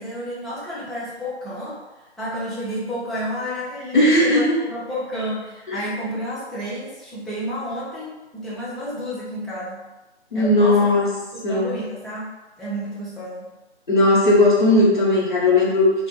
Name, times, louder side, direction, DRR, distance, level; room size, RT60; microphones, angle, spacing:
voice 1, 0.0-1.8 2.2-9.9 10.3-10.9 11.3-13.5, equal, ahead, -10 dB, 0.4 m, -31 dB
voice 2, 3.9-4.6 5.7-5.8 10.3-11.1 11.4-11.8 13.9-15.9, left 2 dB, 45° left, -6 dB, 0.8 m, -17 dB
2.4 x 2.0 x 2.9 m, 1.0 s
figure-of-eight pair, 175°, 34 cm